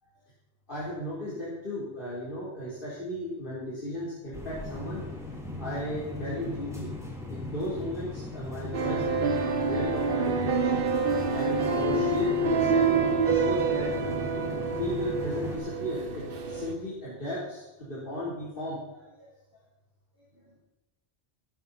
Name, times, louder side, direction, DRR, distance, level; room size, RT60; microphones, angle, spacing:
voice 1, 0.7-5.0 5.6-6.9 7.3-10.8 11.1-13.9 14.4-19.3 19.5-19.6 20.2-20.5, equal, 55° left, -8 dB, 4.1 m, -36 dB
sound 1, 4.3-15.5, left 2 dB, 5° right, 3.6 m, -39 dB
sound 2, 8.7-16.7, right 4 dB, 60° right, 1.3 m, -27 dB
17.0 x 13.5 x 4.3 m, 1.0 s
omnidirectional pair, 1.1 m